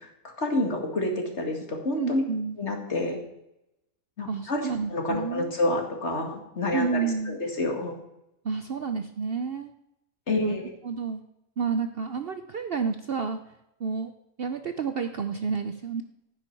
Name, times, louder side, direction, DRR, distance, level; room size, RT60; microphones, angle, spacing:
voice 1, 0.2-2.2 2.6-3.2 4.2-4.6 4.9-7.0 7.3-7.9 10.3-10.7, left 2 dB, 50° left, 3 dB, 2.3 m, -28 dB
voice 2, 2.0-2.6 4.3-5.5 6.7-7.4 8.4-9.7 10.4-10.6 10.8-11.2 11.6-13.4 13.8-14.1 14.4-16.0, right 5 dB, 55° right, 8 dB, 0.7 m, -30 dB
16.0 x 9.5 x 4.6 m, 0.86 s
omnidirectional pair, 1.5 m